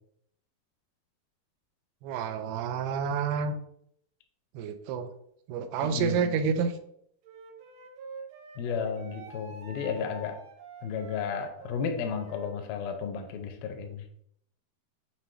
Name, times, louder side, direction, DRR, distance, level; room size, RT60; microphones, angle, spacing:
voice 1, 2.0-3.6 4.6-5.1 5.5-6.7, right 6 dB, 90° right, 8 dB, 2.7 m, -29 dB
voice 2, 5.8-6.4 8.6-10.4 10.8-14.0, left 6 dB, 75° left, 5 dB, 2.5 m, -33 dB
Wind instrument woodwind instrument, 7.2-12.5, right 3 dB, 75° right, 2.8 m, -46 dB
7.8 x 2.8 x 4.3 m, 0.71 s
omnidirectional pair, 4.6 m